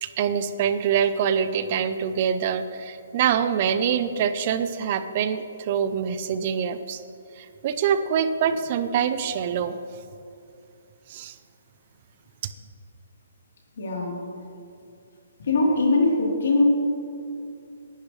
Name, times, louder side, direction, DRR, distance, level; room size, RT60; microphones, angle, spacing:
voice 1, 0.0-7.0 7.4-9.8 11.1-11.3 12.4-12.5, right 8 dB, 40° right, 11 dB, 0.6 m, -25 dB
voice 2, 13.8-14.2 15.4-16.6, left 2 dB, 65° left, -2 dB, 3.6 m, -21 dB
17.5 x 11.5 x 3.3 m, 2.5 s
hypercardioid pair, 155°, 0 cm